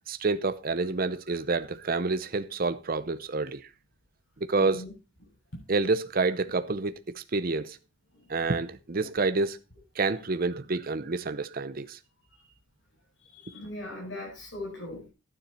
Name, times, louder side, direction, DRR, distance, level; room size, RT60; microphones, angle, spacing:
voice 1, 0.1-3.7 4.4-4.8 5.7-7.8 8.3-9.6 10.0-12.0, right 3 dB, 45° right, 0.7 m, -28 dB
voice 2, 4.5-4.9 13.3-15.1, left 1 dB, 65° left, 7.6 m, -39 dB
12.0 x 9.9 x 4.3 m
head